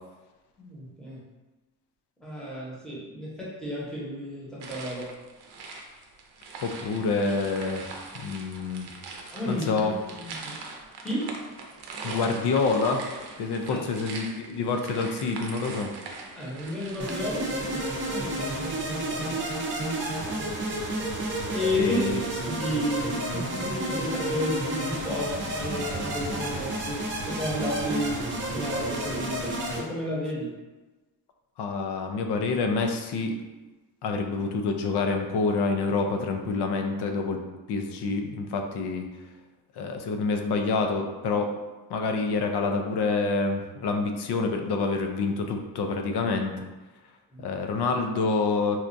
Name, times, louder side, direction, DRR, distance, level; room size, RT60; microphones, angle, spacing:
voice 1, 0.6-1.2 2.2-5.1 9.3-10.5 11.0-11.3 13.7-13.8 16.3-19.4 21.5-22.2 22.4-30.5 47.3-47.5, left 1 dB, ahead, -7 dB, 0.8 m, -32 dB
sound 1, 4.6-17.6, right 3 dB, 70° right, 0.6 m, -42 dB
voice 2, 6.6-7.9 8.1-8.9 9.5-9.9 12.0-13.0 13.4-15.9 21.8-22.2 31.6-33.3 34.0-37.4 37.7-39.0 39.8-41.5 41.9-46.7 47.4-48.8, left 4 dB, 70° left, 4 dB, 0.5 m, -27 dB
sound 2, 17.0-29.8, right 1 dB, 30° right, 0.6 m, -31 dB
4.2 x 2.3 x 2.5 m, 1.2 s
wide cardioid pair, 155°, 41 cm